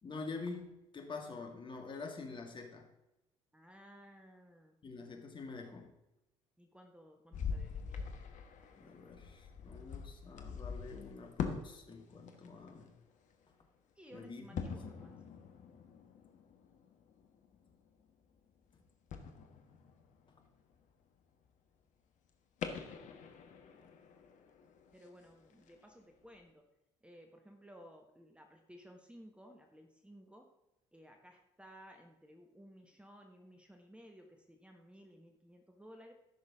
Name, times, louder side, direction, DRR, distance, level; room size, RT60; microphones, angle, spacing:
voice 1, 0.0-2.9 4.8-5.9 8.8-12.9 14.1-14.7 18.7-18.8, left 4 dB, 30° left, 3 dB, 2.1 m, -46 dB
voice 2, 3.5-4.8 6.6-8.1 14.0-15.2 24.9-26.7 27.0-30.5 30.9-36.1, equal, 5° right, 4 dB, 1.4 m, -57 dB
sound 1, 7.3-11.7 12.0-13.0 14.6-18.6 19.1-21.0 21.5-21.6 22.6-25.9 26.3-26.4, left 6 dB, 50° left, 1.3 m, -44 dB
15.0 x 6.3 x 3.7 m, 0.91 s
hypercardioid pair, 60°, 16 cm